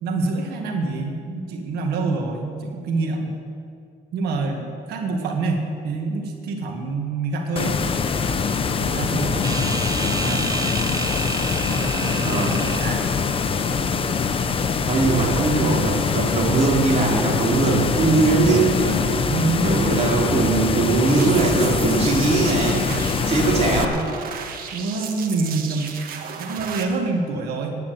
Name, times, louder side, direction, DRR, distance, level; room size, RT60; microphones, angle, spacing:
voice 1, 0.0-3.4 4.1-7.8 8.8-10.7 11.7-13.3 19.3-20.1 24.7-26.0 26.4-27.9, right 3 dB, 85° right, 3 dB, 1.8 m, -27 dB
sound 1, 7.6-23.9, left 5 dB, 35° left, 0.8 m, -23 dB
sound 2, 9.4-13.0, right 4 dB, 20° right, 0.5 m, -30 dB
voice 2, 12.2-12.6 14.9-19.1 19.6-22.8 23.3-24.1, right 3 dB, 40° right, -3 dB, 3.6 m, -20 dB
sound 3, 21.1-26.8, right 7 dB, 65° right, 1.3 m, -35 dB
10.0 x 8.5 x 9.2 m, 2.4 s
cardioid pair, 110°, 16 cm